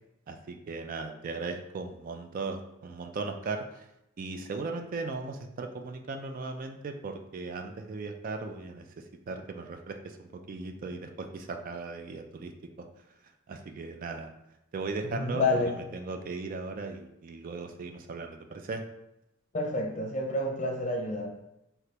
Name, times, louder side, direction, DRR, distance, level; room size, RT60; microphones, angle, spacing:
voice 1, 0.3-3.9 4.2-12.5 12.8-12.9 13.5-14.3 14.7-18.8, right 3 dB, 45° right, 5 dB, 0.3 m, -37 dB
voice 2, 15.1-15.7 19.5-21.4, left 2 dB, 40° left, 2 dB, 0.6 m, -29 dB
3.3 x 2.8 x 2.8 m, 0.87 s
head